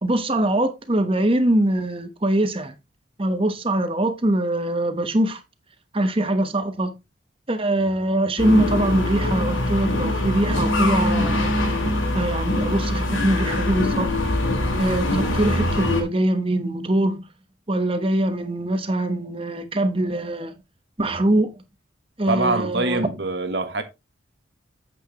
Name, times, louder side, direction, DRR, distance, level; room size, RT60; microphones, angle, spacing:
voice 1, 0.0-2.7 3.2-5.4 5.9-6.9 7.5-11.5 12.1-14.1 14.8-17.2 17.7-20.5 21.0-21.5 22.2-23.0, right 1 dB, 30° right, 1.1 m, -22 dB
sound 1, 8.4-16.0, left 1 dB, 85° left, 3.0 m, -23 dB
voice 2, 22.3-23.8, right 2 dB, 55° right, 1.4 m, -24 dB
8.4 x 8.4 x 3.0 m
head